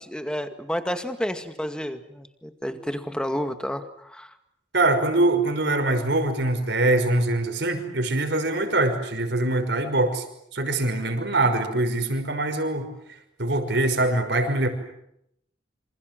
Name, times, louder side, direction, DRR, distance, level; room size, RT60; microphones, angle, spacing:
voice 1, 0.1-4.3, equal, 5° left, 8 dB, 2.1 m, -30 dB
voice 2, 4.7-10.2 10.5-12.9 13.4-14.7, right 2 dB, 65° right, 7 dB, 5.7 m, -23 dB
28.0 x 27.0 x 7.8 m, 0.76 s
head